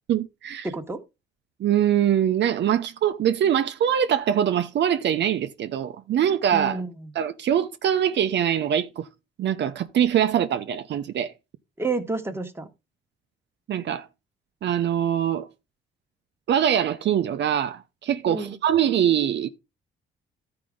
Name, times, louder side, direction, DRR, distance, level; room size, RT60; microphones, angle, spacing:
voice 1, 0.1-0.7 1.6-6.8 7.1-9.1 9.4-11.3 13.7-14.1 14.6-15.5 16.5-19.5, right 9 dB, 60° right, 0.7 m, -23 dB
voice 2, 0.6-1.0 6.5-7.1 11.8-12.7 18.3-18.6, right 3 dB, 10° right, 1.5 m, -30 dB
13.0 x 4.9 x 3.8 m
cardioid pair, 90°, 20 cm